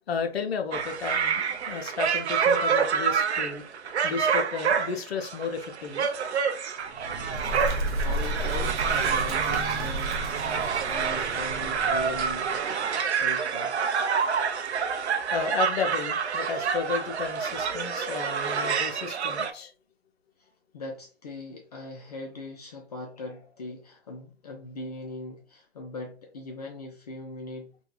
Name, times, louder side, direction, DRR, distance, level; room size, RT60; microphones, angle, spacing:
voice 1, 0.1-3.6 4.0-6.1 15.3-19.7, left 5 dB, 65° left, 0.7 m, -33 dB
sound 1, 0.7-19.5, right 6 dB, 75° right, 0.6 m, -27 dB
Bird, 6.8-12.6, right 1 dB, 50° right, 0.8 m, -33 dB
voice 2, 7.6-10.3 10.9-12.7 13.1-13.8 20.4-20.5 20.7-27.7, left 2 dB, 40° left, 0.4 m, -40 dB
2.7 x 2.2 x 3.1 m
hypercardioid pair, 145°, 33 cm